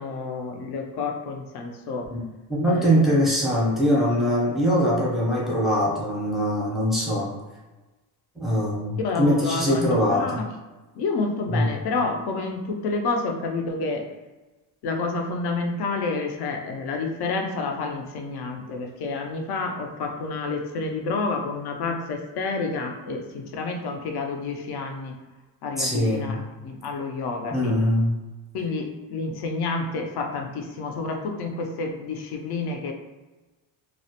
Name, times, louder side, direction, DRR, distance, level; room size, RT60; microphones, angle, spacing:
voice 1, 0.0-2.1 2.7-3.2 9.0-10.5 11.0-14.1 14.8-25.2 25.6-27.8 28.5-32.9, left 3 dB, 55° left, 3 dB, 0.5 m, -29 dB
voice 2, 2.5-7.3 8.4-10.4 11.5-11.7 25.8-26.3 27.5-28.2, equal, ahead, -6 dB, 0.6 m, -22 dB
2.4 x 2.1 x 2.7 m, 1.1 s
cardioid pair, 145°, 46 cm